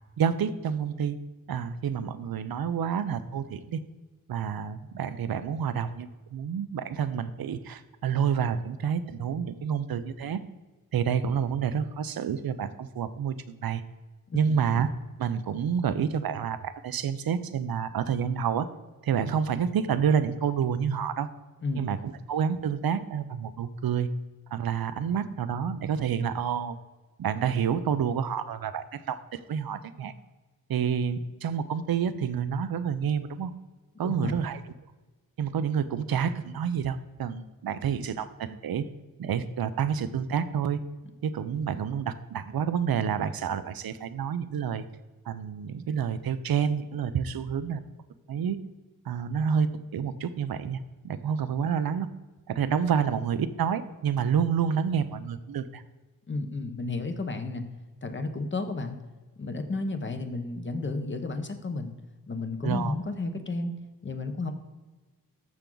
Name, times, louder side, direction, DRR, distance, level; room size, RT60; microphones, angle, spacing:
voice 1, 0.2-1.2 1.5-3.8 4.3-10.4 10.9-13.8 14.3-14.9 15.2-18.7 19.0-21.3 21.7-24.1 24.5-26.8 27.2-30.1 30.7-33.5 34.0-34.6 35.4-38.9 39.2-40.8 41.2-44.8 45.3-47.8 48.3-48.6 49.1-49.7 49.9-52.1 52.5-55.8 62.6-62.9, right 7 dB, 90° right, 12 dB, 0.7 m, -28 dB
voice 2, 34.0-34.3 56.3-57.6 58.0-59.0 59.4-61.9 62.3-63.7 64.0-64.5, left 3 dB, 35° left, 7 dB, 0.9 m, -32 dB
13.5 x 6.0 x 3.9 m, 1.2 s
wide cardioid pair, 175°, 35 cm